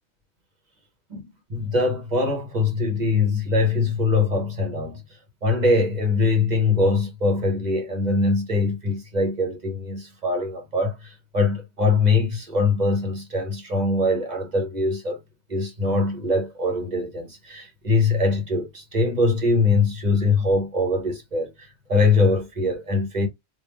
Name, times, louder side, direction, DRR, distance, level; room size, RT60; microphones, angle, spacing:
voice 1, 1.1-5.0 5.4-15.2 15.5-23.3, left 3 dB, 35° right, 1.2 m, -22 dB
3.5 x 2.7 x 3.0 m
omnidirectional pair, 1.3 m